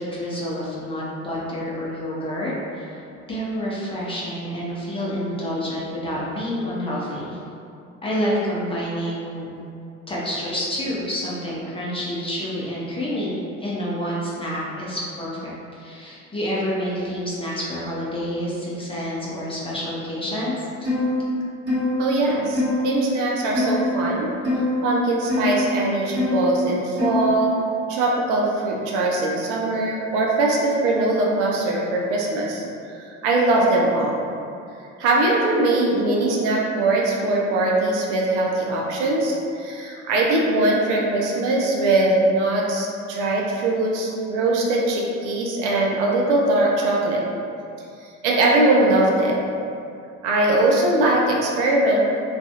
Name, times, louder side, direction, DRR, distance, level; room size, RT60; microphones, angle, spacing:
voice 1, 0.0-3.0 3.3-7.4 8.0-9.5 10.1-15.5 15.8-20.9, equal, 15° left, -7 dB, 0.6 m, -28 dB
sound 1, 20.8-21.1 21.7-21.9 22.5-22.8 23.5-23.8 24.4-24.7 25.3-25.5 26.1-26.4 27.0-27.3, left 2 dB, 35° right, 1.1 m, -23 dB
voice 2, 22.0-24.3 24.8-27.5 27.9-34.3 35.0-47.2 48.2-49.4 50.2-52.0, right 2 dB, 65° right, -2 dB, 0.5 m, -21 dB
2.3 x 2.3 x 2.7 m, 2.5 s
figure-of-eight pair, 55°, 38 cm